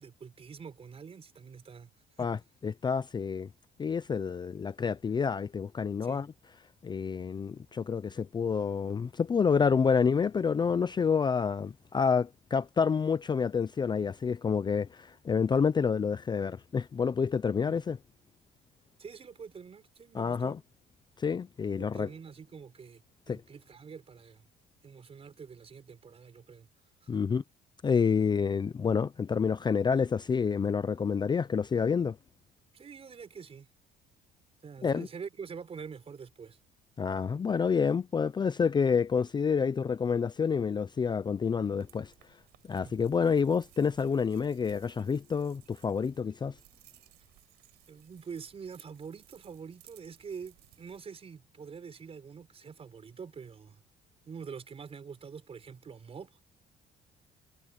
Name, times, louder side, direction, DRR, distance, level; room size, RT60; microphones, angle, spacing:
voice 1, 0.0-1.9 2.2-2.3 6.0-6.2 17.7-17.8 19.0-20.6 21.8-23.0 23.3-24.4 24.8-26.7 27.0-27.2 32.7-33.7 34.6-36.6 42.8-43.1 47.9-53.8 54.2-56.4, right 6 dB, 35° right, 4.7 m, -45 dB
voice 2, 2.6-3.5 3.8-6.3 6.8-18.0 20.1-20.6 21.2-22.1 23.3-23.4 27.1-27.4 27.8-32.2 34.8-35.1 37.0-42.1 42.7-46.5, left 6 dB, 25° left, 0.6 m, -28 dB
sound 1, 41.6-51.0, right 17 dB, 85° right, 5.1 m, -61 dB
cardioid pair, 110°, 17 cm